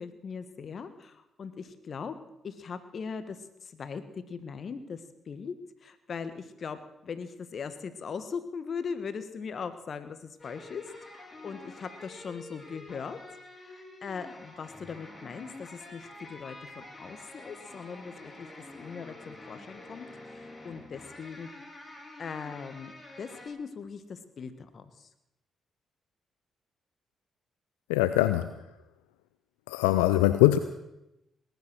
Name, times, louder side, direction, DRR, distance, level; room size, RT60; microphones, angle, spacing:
voice 1, 0.0-2.2 2.4-5.6 5.8-10.8 11.1-13.2 13.6-18.5 18.8-21.5 22.2-22.9 23.2-25.1, left 6 dB, 55° left, 11 dB, 1.5 m, -40 dB
sound 1, 10.4-23.5, left 2 dB, 30° left, 5.8 m, -48 dB
voice 2, 27.9-28.6 29.7-30.6, left 15 dB, 90° left, 11 dB, 0.4 m, -22 dB
19.0 x 11.0 x 6.2 m, 0.89 s
hypercardioid pair, 45°, 0 cm